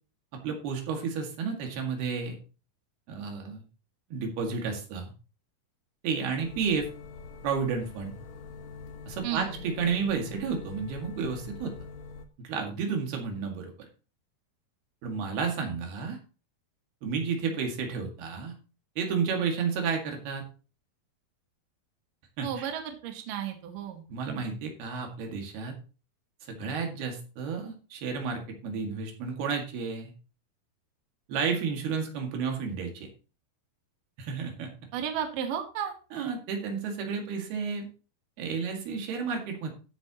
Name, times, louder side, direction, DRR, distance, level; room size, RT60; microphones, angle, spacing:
voice 1, 0.3-2.4 3.1-3.6 4.1-5.1 6.0-6.9 7.4-8.2 9.1-11.7 12.4-13.9 15.0-16.2 17.0-18.5 19.0-20.4 22.4-22.7 24.1-25.7 26.5-30.1 31.3-33.1 34.2-34.7 36.1-37.9 38.4-39.7, right 5 dB, 85° right, 2 dB, 4.0 m, -31 dB
sound 1, 6.4-12.3, left 4 dB, 65° left, 1.3 m, -43 dB
voice 2, 9.2-9.6 22.4-24.0 34.9-35.9, right 9 dB, 65° right, 5 dB, 2.8 m, -33 dB
14.5 x 8.8 x 2.9 m, 0.35 s
omnidirectional pair, 4.4 m